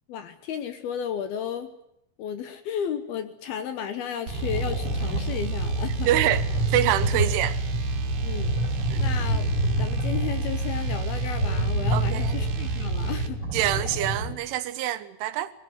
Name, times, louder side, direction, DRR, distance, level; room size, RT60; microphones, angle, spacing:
voice 1, 0.1-1.7 2.2-6.3 7.1-7.3 8.2-8.6 9.0-9.5 9.8-13.4, left 8 dB, 70° left, 2.6 m, -33 dB
sound 1, 4.3-14.3, right 1 dB, 30° left, 6.8 m, -28 dB
sound 2, 4.3-13.4, right 3 dB, 65° right, 1.7 m, -30 dB
voice 2, 6.1-6.4 6.7-7.6 8.9-9.0 11.9-12.3 13.5-15.5, right 13 dB, 85° right, 3.6 m, -25 dB
22.0 x 19.0 x 9.6 m
omnidirectional pair, 5.4 m